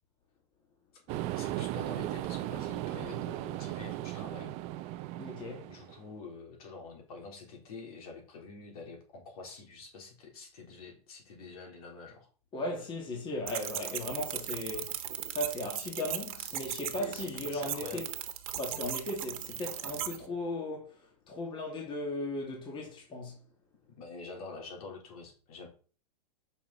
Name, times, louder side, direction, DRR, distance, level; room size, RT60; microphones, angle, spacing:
sound 1, 1.1-6.0, right 15 dB, 30° right, 0.4 m, -37 dB
voice 1, 1.3-4.5 5.7-12.3 16.3-16.6 16.9-18.1 24.0-25.7, left 4 dB, 65° left, 3.8 m, -47 dB
voice 2, 5.2-5.7 12.5-15.0 15.3-18.1 18.6-20.9 21.3-23.4, left 1 dB, 25° left, 2.3 m, -37 dB
sound 2, 13.5-20.2, right 11 dB, 60° right, 1.4 m, -38 dB
8.4 x 5.7 x 4.1 m
hypercardioid pair, 130°, 20 cm